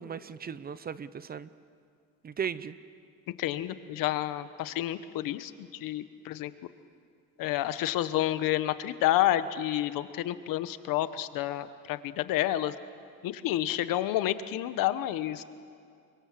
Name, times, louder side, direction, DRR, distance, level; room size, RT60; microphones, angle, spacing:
voice 1, 0.0-1.5 2.2-2.8, right 7 dB, 30° right, 15 dB, 0.7 m, -36 dB
voice 2, 3.4-6.5 7.4-12.7 13.2-15.4, left 13 dB, 85° left, 12 dB, 1.2 m, -29 dB
29.0 x 24.5 x 7.5 m, 2.3 s
cardioid pair, 145°, 33 cm